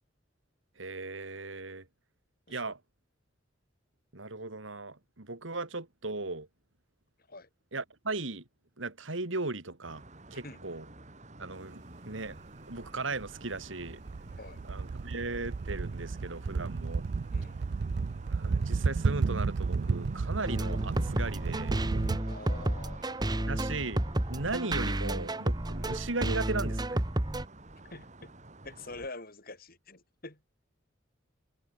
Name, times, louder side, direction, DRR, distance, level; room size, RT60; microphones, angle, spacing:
voice 1, 0.8-1.9 2.5-2.8 4.1-6.5 7.7-8.4 8.8-10.0 10.3-10.9 11.4-12.3 12.7-14.0 14.7-17.0 18.3-21.8 23.5-24.0 24.3-27.1, right 3 dB, 80° right, 2.6 m, -37 dB
sound 1, 9.8-29.1, right 2 dB, 35° right, 2.7 m, -49 dB
sound 2, 12.3-12.4 12.8-22.2, right 4 dB, 60° right, 0.5 m, -32 dB
sound 3, 20.4-27.4, right 1 dB, 20° right, 1.1 m, -31 dB
voice 2, 22.2-23.6 27.9-28.3 28.6-30.4, left 2 dB, 50° left, 5.5 m, -46 dB
head